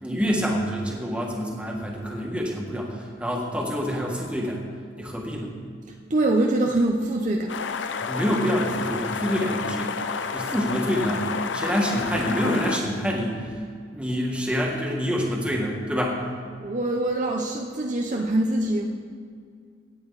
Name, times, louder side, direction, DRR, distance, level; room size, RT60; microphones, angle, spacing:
voice 1, 0.0-4.6 5.0-5.5 8.0-9.9 10.3-11.3 11.5-13.4 13.9-16.2, equal, 5° right, -2 dB, 1.8 m, -26 dB
voice 2, 6.1-7.6 16.6-18.8, right 2 dB, 40° right, 1 dB, 0.8 m, -24 dB
sound 1, 7.5-12.8, left 5 dB, 80° left, 0.6 m, -30 dB
17.0 x 8.3 x 4.1 m, 2.1 s
head